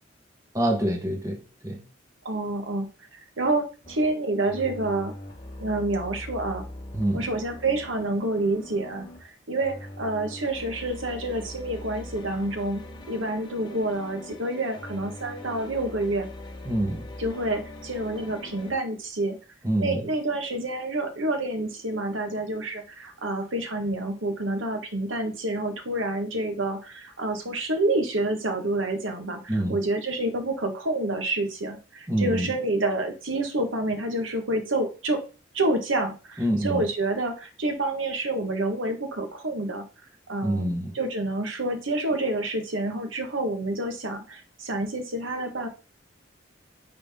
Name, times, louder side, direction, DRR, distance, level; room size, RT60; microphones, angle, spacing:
voice 1, 0.5-1.8 6.9-7.3 16.6-17.1 19.6-20.1 29.5-29.8 32.1-32.5 36.4-36.8 40.4-41.0, right 1 dB, 15° right, 1.3 m, -26 dB
voice 2, 2.2-2.9 3.4-5.1 5.6-6.6 7.1-9.1 9.5-12.8 13.1-16.3 17.2-19.4 19.8-29.4 29.7-35.2 35.5-39.8 40.3-40.7 40.9-45.7, right 2 dB, 80° right, 1.5 m, -28 dB
sound 1, 3.8-4.1 4.4-9.3 9.6-18.7, left 1 dB, 25° left, 1.2 m, -42 dB
9.4 x 3.9 x 3.6 m
head